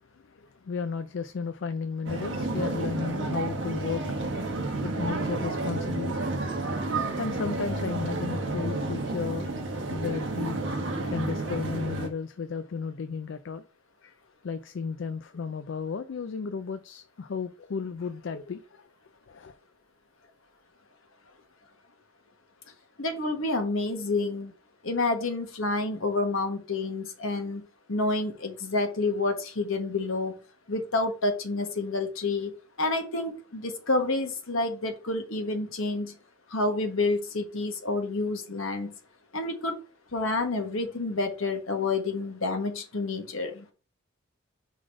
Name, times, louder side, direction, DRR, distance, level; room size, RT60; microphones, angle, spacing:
voice 1, 0.4-4.3 4.6-6.2 7.2-9.5 9.9-10.6 11.1-13.6 14.0-14.1 14.4-18.8 19.3-19.5, left 5 dB, 60° left, 0.4 m, -34 dB
sound 1, 2.1-12.1, right 2 dB, 60° right, 1.2 m, -31 dB
voice 2, 23.0-24.5 24.8-27.6 27.9-30.4 30.7-32.5 32.8-36.1 36.5-38.9 39.3-39.8 40.1-43.7, left 2 dB, 75° left, 1.4 m, -29 dB
5.0 x 3.9 x 4.9 m
head